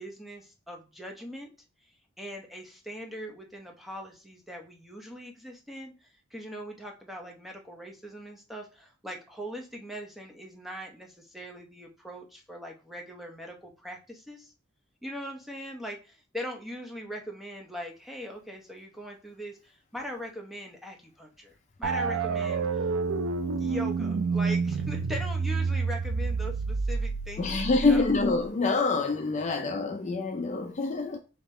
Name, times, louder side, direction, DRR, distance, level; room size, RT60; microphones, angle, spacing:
voice 1, 0.0-1.5 2.2-14.5 15.0-22.9 23.6-28.1, equal, ahead, 0.7 m, -41 dB
sound 1, 21.8-28.5, right 4 dB, 75° right, 0.4 m, -29 dB
voice 2, 27.4-31.2, left 3 dB, 35° left, 0.4 m, -26 dB
5.2 x 2.9 x 3.2 m
head